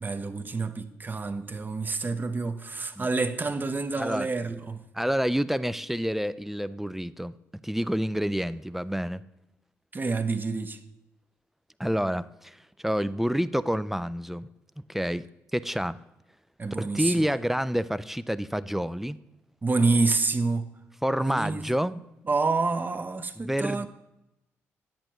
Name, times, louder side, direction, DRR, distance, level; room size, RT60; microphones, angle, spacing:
voice 1, 0.0-4.8 9.9-10.8 16.6-17.3 19.6-20.7 21.2-21.6 22.3-23.9, right 3 dB, 30° right, 0.8 m, -28 dB
voice 2, 4.0-4.3 4.9-7.3 7.6-9.2 11.8-14.5 14.9-15.3 15.5-16.0 16.7-19.2 21.0-21.9 23.4-23.9, equal, 5° right, 0.3 m, -28 dB
10.5 x 7.6 x 3.0 m
hypercardioid pair, 50°, 6 cm